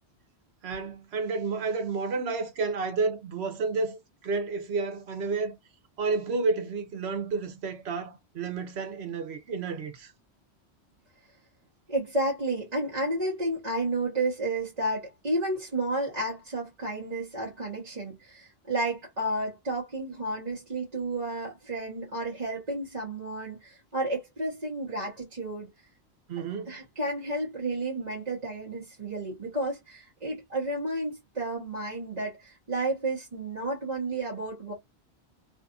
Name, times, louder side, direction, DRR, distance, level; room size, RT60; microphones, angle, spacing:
voice 1, 0.6-5.6 6.0-10.1 26.3-26.8, right 4 dB, 75° right, 1.0 m, -31 dB
voice 2, 11.9-25.7 26.4-34.7, right 2 dB, 40° right, 1.1 m, -31 dB
2.7 x 2.4 x 2.4 m
omnidirectional pair, 1.1 m